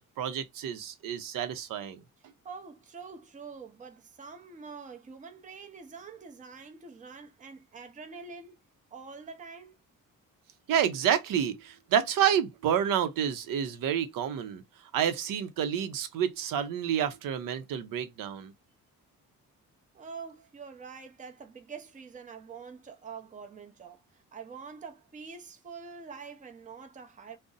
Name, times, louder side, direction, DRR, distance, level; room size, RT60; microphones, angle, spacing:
voice 1, 0.0-2.0 10.7-14.6 14.9-18.5, right 9 dB, 80° right, 0.6 m, -29 dB
voice 2, 2.4-8.6 8.9-9.8 19.9-27.4, right 5 dB, 25° right, 0.6 m, -45 dB
2.5 x 2.0 x 3.8 m
cardioid pair, 100°, 33 cm